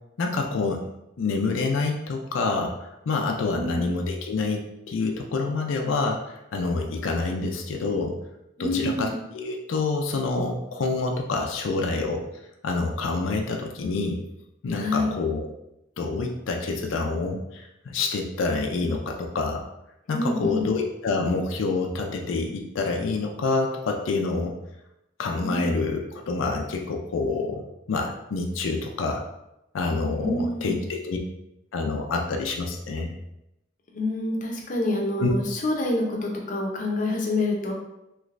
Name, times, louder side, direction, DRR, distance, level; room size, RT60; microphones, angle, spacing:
voice 1, 0.2-0.8 1.2-8.1 8.6-12.2 12.6-14.2 14.6-15.5 16.0-19.6 20.1-24.5 25.2-27.6 27.9-29.2 29.7-31.2 31.7-33.1 35.2-35.3, left 3 dB, 90° left, 2 dB, 0.4 m, -27 dB
voice 2, 3.5-3.9 8.6-9.2 14.7-15.1 20.1-20.7 25.4-25.8 30.2-30.7 33.9-37.7, left 1 dB, 40° left, 0 dB, 0.6 m, -27 dB
3.2 x 3.0 x 2.5 m, 0.87 s
head